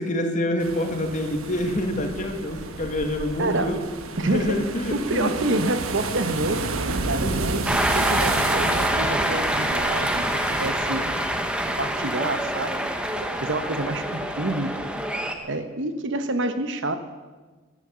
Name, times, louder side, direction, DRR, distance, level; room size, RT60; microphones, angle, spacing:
voice 1, 0.0-3.8 4.2-5.3 7.2-7.4, left 1 dB, 35° left, 4 dB, 1.8 m, -26 dB
sound 1, 0.6-10.7, right 3 dB, 75° right, 1.2 m, -31 dB
voice 2, 3.4-3.8 4.2-4.6 4.9-6.7 7.1-11.0 11.8-14.7 15.4-17.0, right 2 dB, 55° right, 9 dB, 1.0 m, -28 dB
Cheering, 7.7-15.3, right 1 dB, 5° right, 1.0 m, -25 dB
15.0 x 12.0 x 6.9 m, 1.3 s
head